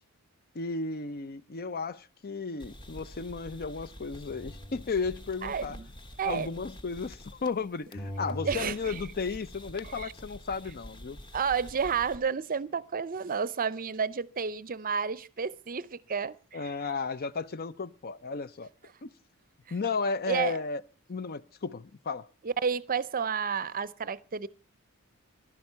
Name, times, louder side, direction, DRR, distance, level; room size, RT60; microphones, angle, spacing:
voice 1, 0.5-5.8 6.2-11.2 16.5-18.7 19.0-19.1 19.7-20.8 21.1-22.3, left 4 dB, 45° left, 0.6 m, -34 dB
sound 1, 2.6-7.6 7.9-12.2, equal, 20° left, 1.1 m, -44 dB
voice 2, 5.4-5.9 6.2-6.5 8.4-9.0 10.0-10.1 11.3-16.7 20.3-20.6 22.4-24.5, right 6 dB, 40° right, 0.6 m, -31 dB
15.0 x 12.0 x 5.6 m
head